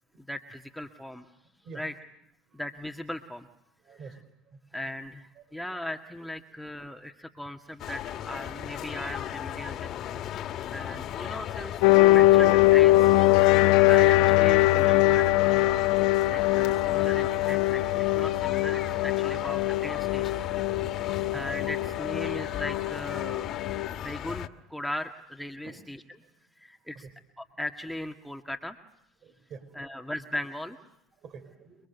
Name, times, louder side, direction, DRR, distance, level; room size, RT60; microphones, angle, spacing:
voice 1, 0.3-1.3 1.7-1.9 2.5-3.5 4.7-9.9 10.7-13.2 13.6-15.9 16.2-20.4 21.3-23.5 23.9-26.0 26.6-27.1 27.4-28.8 29.8-30.8, left 1 dB, ahead, 3 dB, 1.9 m, -38 dB
voice 2, 3.9-4.2 5.4-5.6 10.1-10.2 14.2-14.3 16.5-16.7 24.1-24.2 25.6-25.8 27.0-27.1 29.2-30.0 31.2-31.8, right 5 dB, 50° right, 10 dB, 5.0 m, -47 dB
sound 1, 7.8-24.5, left 11 dB, 55° left, 1.9 m, -36 dB
sound 2, 11.8-23.9, left 17 dB, 80° left, 1.1 m, -22 dB
29.0 x 22.5 x 8.2 m, 0.77 s
supercardioid pair, 95°, 0 cm